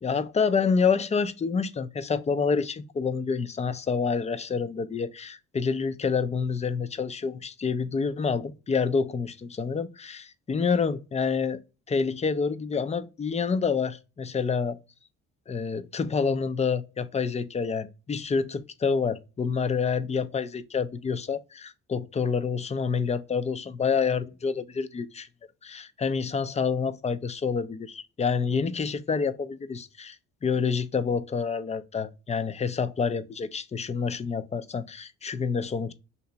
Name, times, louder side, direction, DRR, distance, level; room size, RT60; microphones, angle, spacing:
voice 1, 0.0-11.6 11.9-14.8 15.5-25.3 25.6-30.2 30.4-35.9, left 5 dB, 25° left, 0.4 m, -28 dB
2.9 x 2.8 x 3.3 m
cardioid pair, 90°, 30 cm